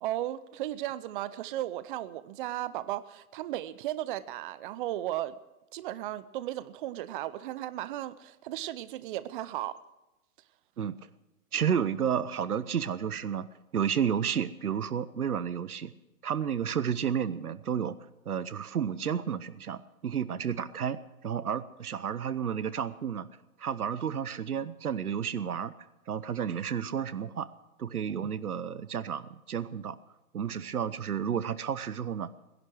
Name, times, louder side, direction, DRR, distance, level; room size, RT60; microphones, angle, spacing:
voice 1, 0.0-5.4 5.7-9.7, right 14 dB, 35° right, 15 dB, 0.6 m, -35 dB
voice 2, 11.5-13.5 13.7-15.9 16.2-18.0 18.3-23.3 23.6-25.7 26.1-27.5 27.8-30.0 30.3-32.3, right 8 dB, 85° right, 16 dB, 1.0 m, -31 dB
19.5 x 11.0 x 6.3 m, 0.97 s
hypercardioid pair, 125°, 43 cm